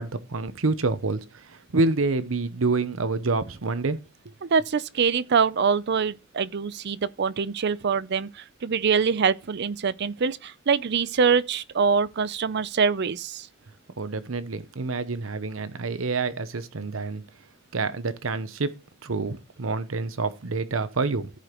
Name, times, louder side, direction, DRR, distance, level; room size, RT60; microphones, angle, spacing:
voice 1, 0.0-4.0 14.0-17.2 17.7-18.7 19.0-21.3, right 3 dB, 85° right, 0.8 m, -27 dB
voice 2, 4.4-13.5, right 5 dB, 55° right, 0.5 m, -24 dB
14.5 x 5.0 x 3.0 m
head